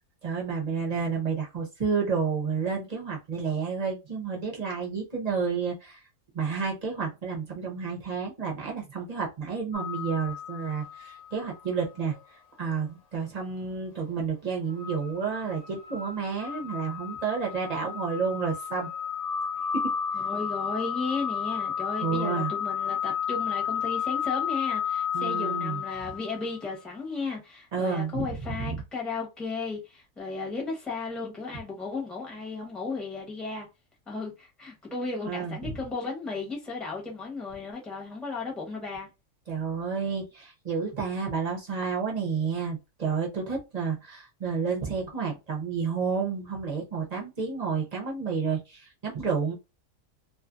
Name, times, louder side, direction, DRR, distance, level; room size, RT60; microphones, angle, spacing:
voice 1, 0.2-6.0 6.3-12.1 12.6-18.9 19.7-19.9 22.0-22.5 25.1-25.8 27.7-28.3 28.7-28.8 35.3-35.8 39.5-49.5, right 5 dB, 40° right, 0.6 m, -30 dB
sound 1, 9.7-11.6 12.0-12.1 14.8-26.7, left 8 dB, 65° left, 0.8 m, -32 dB
voice 2, 20.1-33.7 34.1-39.1, left 4 dB, ahead, 0.6 m, -35 dB
2.5 x 2.5 x 2.4 m
omnidirectional pair, 1.6 m